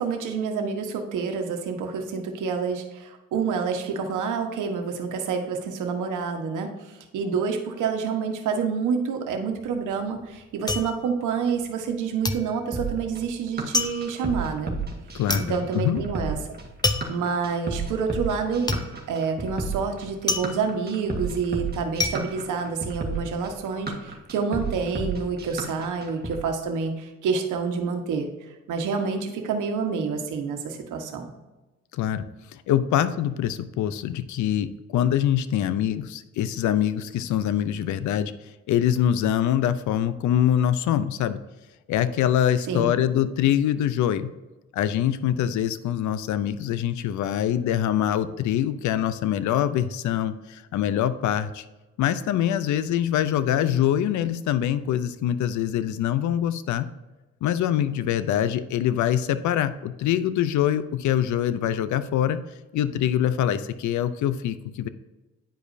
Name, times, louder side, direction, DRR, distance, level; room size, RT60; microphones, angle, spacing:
voice 1, 0.0-14.8 15.4-16.4 17.1-18.8 19.1-28.3 28.7-31.3 42.7-42.9, right 5 dB, 80° right, 4 dB, 1.3 m, -28 dB
sound 1, 9.6-11.9 12.2-23.4 23.7-24.3, left 3 dB, 15° left, 0.6 m, -30 dB
sound 2, 12.7-26.4, right 3 dB, 30° right, 1.5 m, -32 dB
voice 2, 15.1-16.0 31.9-32.2 32.5-38.3 38.7-41.4 41.9-44.3 44.7-51.6 52.0-56.9 57.4-62.4 62.7-64.9, left 10 dB, 75° left, 13 dB, 0.6 m, -24 dB
10.0 x 5.0 x 2.7 m, 1.1 s
cardioid pair, 90°, 30 cm